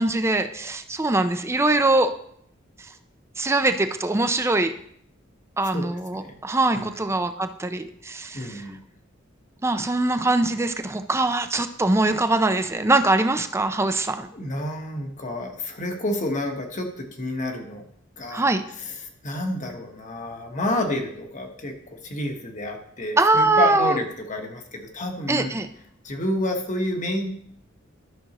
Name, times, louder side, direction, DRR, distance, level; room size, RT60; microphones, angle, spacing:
voice 1, 0.0-2.1 3.4-4.7 5.6-8.6 9.6-14.3 18.3-18.6 23.2-24.0 25.3-25.7, right 2 dB, 15° right, 8 dB, 0.5 m, -22 dB
voice 2, 5.6-6.3 6.7-7.0 8.3-8.8 14.3-17.9 18.2-18.5 18.8-25.6 26.0-27.3, left 1 dB, 40° left, 3 dB, 1.3 m, -29 dB
12.5 x 6.1 x 3.0 m, 0.66 s
head